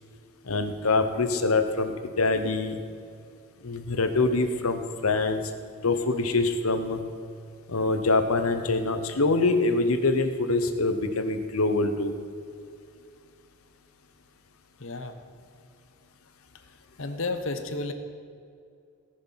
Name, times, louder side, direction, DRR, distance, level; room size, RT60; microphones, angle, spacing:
voice 1, 0.4-1.9 2.2-2.8 3.6-5.4 5.8-7.0 7.7-12.1, left 3 dB, 85° left, 8 dB, 1.0 m, -24 dB
voice 2, 14.8-15.1 17.0-17.9, left 3 dB, 70° left, 7 dB, 1.0 m, -31 dB
17.5 x 6.6 x 5.8 m, 2.4 s
head